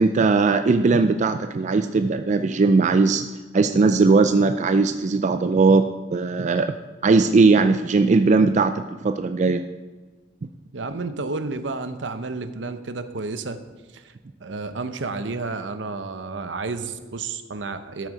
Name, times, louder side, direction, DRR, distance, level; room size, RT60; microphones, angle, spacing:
voice 1, 0.0-3.3 3.5-6.7 7.0-9.6, right 4 dB, 40° right, 8 dB, 0.4 m, -19 dB
voice 2, 10.7-13.6 13.9-14.1 14.4-18.1, right 3 dB, 70° right, 10 dB, 0.8 m, -31 dB
13.0 x 6.3 x 4.9 m, 1.3 s
head